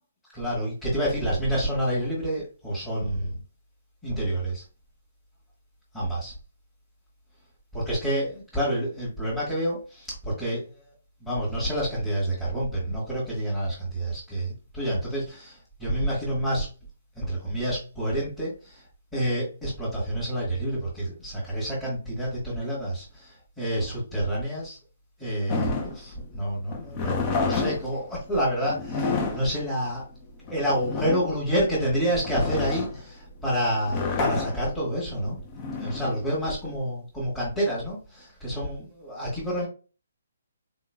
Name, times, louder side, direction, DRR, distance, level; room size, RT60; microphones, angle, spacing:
voice 1, 0.3-3.4 4.0-4.6 5.9-6.3 7.7-10.9 11.2-16.7 17.2-18.8 19.1-24.8 25.2-30.1 30.5-35.4 35.8-39.7, right 1 dB, 10° left, -10 dB, 1.7 m, -28 dB
sound 1, 25.5-36.9, left 4 dB, 25° left, 0.7 m, -30 dB
4.1 x 3.7 x 2.3 m, 0.35 s
hypercardioid pair, 155°, 0 cm